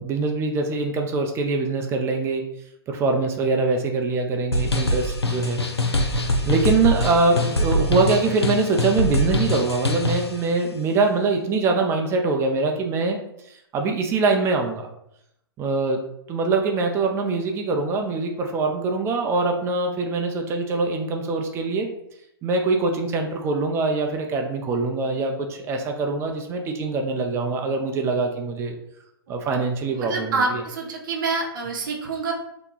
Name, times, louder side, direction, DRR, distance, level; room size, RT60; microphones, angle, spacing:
voice 1, 0.0-2.4 2.9-13.2 13.7-14.9 15.6-16.0 16.3-21.9 22.4-28.7 29.3-30.6, right 3 dB, 20° right, 3 dB, 0.4 m, -23 dB
sound 1, 4.5-10.3, left 1 dB, 90° left, 0.5 m, -23 dB
voice 2, 30.0-32.3, right 4 dB, 55° right, 1 dB, 0.7 m, -26 dB
2.9 x 2.2 x 3.7 m, 0.79 s
figure-of-eight pair, 110°, 13 cm